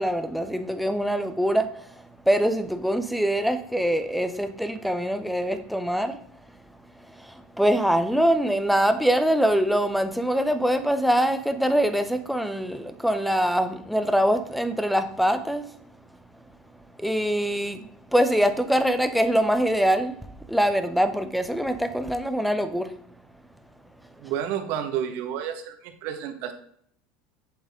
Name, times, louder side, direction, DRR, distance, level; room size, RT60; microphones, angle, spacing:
voice 1, 0.0-1.7 2.3-6.2 7.6-15.6 17.0-20.1 20.5-22.9, equal, ahead, 0.7 m, -23 dB
voice 2, 24.2-26.5, right 9 dB, 65° right, 1.5 m, -30 dB
8.0 x 7.4 x 3.7 m
supercardioid pair, 130°, 3 cm